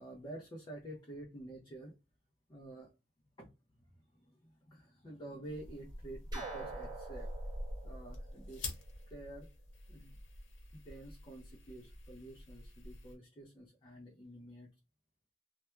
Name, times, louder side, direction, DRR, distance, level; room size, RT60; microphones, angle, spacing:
voice 1, 0.0-1.9 2.5-2.9 3.4-7.3 7.8-9.5 9.9-10.2 10.7-14.7, right 1 dB, 25° left, 0.4 m, -50 dB
sound 1, 5.4-13.2, left 1 dB, 80° left, 0.8 m, -47 dB
sound 2, 6.3-9.1, right 2 dB, 20° right, 0.6 m, -45 dB
2.2 x 2.1 x 2.9 m
head